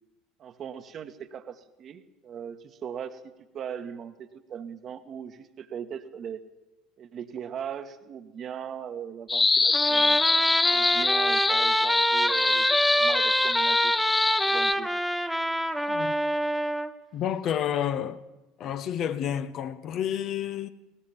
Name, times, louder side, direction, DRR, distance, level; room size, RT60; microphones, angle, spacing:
voice 1, 0.4-3.2 3.5-6.4 7.0-10.2 10.7-12.7 12.9-13.9 14.4-14.9, right 8 dB, 40° right, 1.5 m, -39 dB
sound 1, 9.3-14.7, left 3 dB, 20° left, 0.6 m, -24 dB
Trumpet, 9.7-16.9, equal, ahead, 1.2 m, -26 dB
voice 2, 17.1-18.2 18.6-20.7, left 9 dB, 45° left, 1.1 m, -30 dB
20.5 x 19.0 x 7.2 m
figure-of-eight pair, 65°, 0 cm